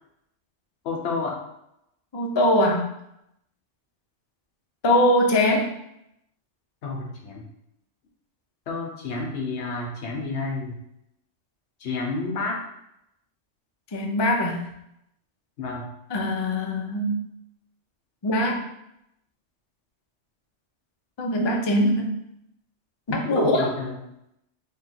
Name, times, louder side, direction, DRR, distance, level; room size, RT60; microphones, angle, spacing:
voice 1, 0.8-1.4 6.8-7.5 8.7-10.8 11.8-12.6 15.6-15.9 23.1-23.9, left 3 dB, 70° left, 0 dB, 1.1 m, -30 dB
voice 2, 2.1-2.9 4.8-5.7 13.9-14.7 16.1-17.2 18.2-18.7 21.2-22.1 23.1-23.7, left 1 dB, 45° left, 1 dB, 0.3 m, -22 dB
3.7 x 2.3 x 4.1 m, 0.79 s
omnidirectional pair, 1.2 m